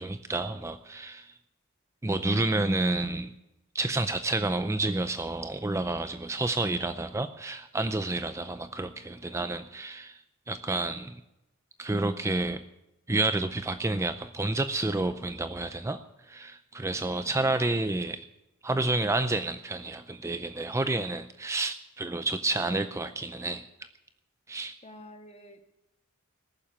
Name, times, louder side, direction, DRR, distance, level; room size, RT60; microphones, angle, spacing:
voice 1, 0.0-1.3 2.0-3.3 3.7-10.2 10.5-11.2 11.8-12.6 13.1-16.0 16.3-18.2 18.6-23.6 24.5-24.7, right 2 dB, 15° right, 10 dB, 0.5 m, -29 dB
voice 2, 16.9-17.8 24.8-25.7, left 1 dB, 30° left, 5 dB, 1.7 m, -50 dB
19.5 x 7.3 x 8.7 m, 0.91 s
head